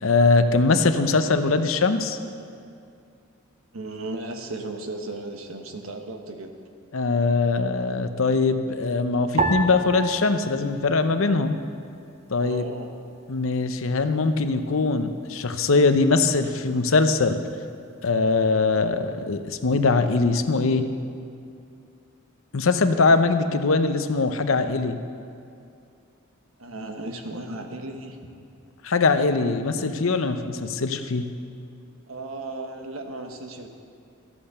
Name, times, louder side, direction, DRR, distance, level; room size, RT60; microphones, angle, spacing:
voice 1, 0.0-2.2 6.9-11.6 12.3-12.6 13.3-17.4 18.0-20.9 22.5-25.0 28.8-31.3, left 3 dB, 65° left, 9 dB, 0.7 m, -22 dB
voice 2, 3.7-6.5 12.4-12.9 26.6-28.2 32.1-33.7, right 2 dB, 75° right, 4 dB, 1.3 m, -35 dB
sound 1, 9.4-11.9 12.2-13.1 13.7-14.1, right 3 dB, 30° right, 0.7 m, -31 dB
13.5 x 8.7 x 6.7 m, 2.5 s
head